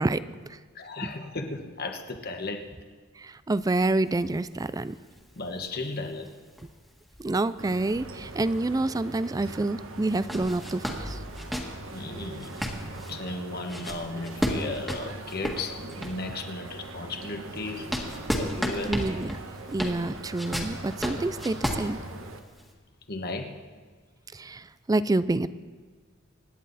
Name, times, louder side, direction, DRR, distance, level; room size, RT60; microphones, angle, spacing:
voice 1, 0.0-0.6 1.0-1.1 3.2-4.9 7.2-11.2 18.9-19.4 19.7-22.0 24.3-25.5, right 2 dB, 20° right, 15 dB, 0.4 m, -28 dB
voice 2, 0.7-2.7 5.4-6.3 11.9-12.5 13.1-17.9 18.4-18.9 23.1-23.5, left 3 dB, 50° left, 5 dB, 1.4 m, -35 dB
sound 1, 3.6-8.9 9.2-9.3 10.0-16.4 16.9-22.7, equal, ahead, 1.7 m, -34 dB
sound 2, 7.6-22.4, right 2 dB, 90° right, 1.3 m, -41 dB
25.5 x 10.5 x 4.1 m, 1.5 s
head